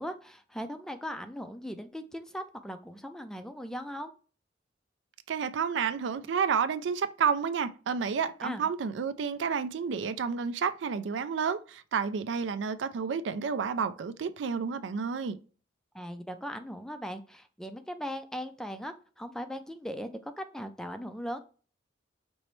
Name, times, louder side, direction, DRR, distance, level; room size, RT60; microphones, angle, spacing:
voice 1, 0.0-4.1 8.4-8.7 15.9-21.4, equal, 5° left, 0.3 m, -39 dB
voice 2, 5.3-15.4, right 6 dB, 70° right, 0.4 m, -30 dB
5.3 x 3.0 x 3.1 m
head